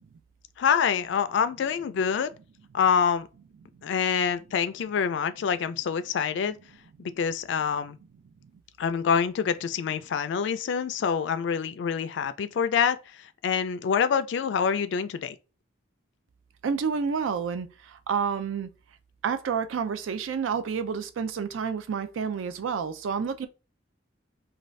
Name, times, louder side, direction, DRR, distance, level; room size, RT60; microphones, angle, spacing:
voice 1, 0.6-2.3 2.7-3.3 3.8-6.6 7.0-8.0 8.8-15.4, left 7 dB, 70° left, 0.3 m, -26 dB
voice 2, 16.6-18.7 19.2-23.5, right 6 dB, 85° right, 0.4 m, -29 dB
2.5 x 2.3 x 3.1 m
head